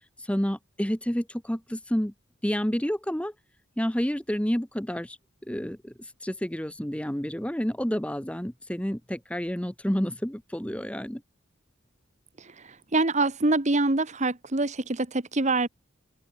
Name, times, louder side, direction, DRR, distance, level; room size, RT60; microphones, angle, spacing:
voice 1, 0.3-2.1 2.4-3.3 3.8-5.2 5.5-5.9 6.2-11.2, equal, 5° left, 1.1 m, -29 dB
voice 2, 12.4-15.7, right 2 dB, 35° right, 1.4 m, -25 dB
head